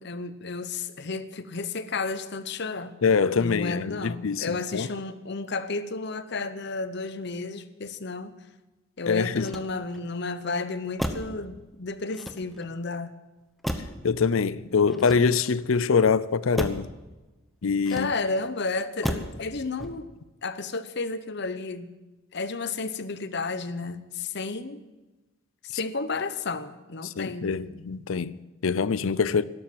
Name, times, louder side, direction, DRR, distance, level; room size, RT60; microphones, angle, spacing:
voice 1, 0.0-3.0 3.4-8.3 9.0-13.1 17.9-20.1 20.4-21.9 22.3-24.8 25.6-27.5, left 3 dB, 55° left, 0.9 m, -32 dB
voice 2, 3.0-4.9 9.1-9.5 14.0-16.9 17.6-18.1 27.0-29.4, left 5 dB, 75° left, 0.5 m, -24 dB
Motor vehicle (road), 9.4-10.1 11.0-11.4 12.1-12.8 13.6-14.1 14.9-15.6 16.5-16.9 17.8-18.4 19.0-19.4 19.8-20.2, equal, ahead, 1.0 m, -34 dB
12.5 x 12.0 x 7.6 m
head